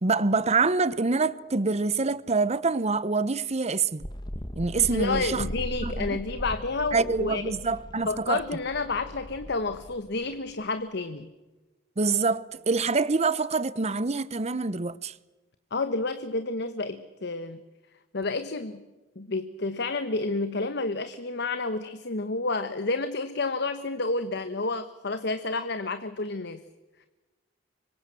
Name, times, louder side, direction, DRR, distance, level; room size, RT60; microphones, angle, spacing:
voice 1, 0.0-4.1 4.6-5.4 5.8-6.2 6.9-8.4 12.0-15.1, right 4 dB, 35° right, 0.9 m, -26 dB
sound 1, 4.0-10.6, equal, 25° left, 1.7 m, -38 dB
voice 2, 4.8-7.5 8.1-11.3 15.7-17.6 18.1-18.8 19.2-26.6, left 3 dB, 65° left, 1.2 m, -30 dB
26.0 x 23.5 x 7.7 m
head